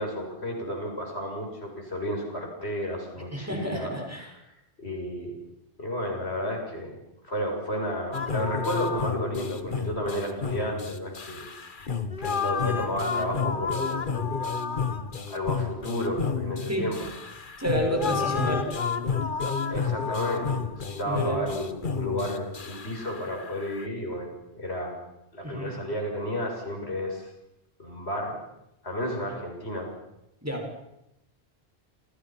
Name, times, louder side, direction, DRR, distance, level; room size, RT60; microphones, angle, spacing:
voice 1, 0.0-3.9 4.8-5.3 5.8-6.9 7.3-11.4 11.8-11.9 12.2-14.1 15.3-17.0 18.2-18.3 19.7-24.3 24.5-24.9 25.3-27.3 27.8-28.4 28.8-29.9, equal, 75° left, 1 dB, 7.4 m, -32 dB
voice 2, 3.3-4.3 16.7-16.9 17.6-18.7 21.0-21.4 25.4-25.7 30.4-30.7, equal, 15° right, 2 dB, 6.2 m, -29 dB
sound 1, 8.1-23.9, left 5 dB, 50° left, 1.5 m, -31 dB
29.0 x 28.0 x 6.0 m, 0.86 s
omnidirectional pair, 1.1 m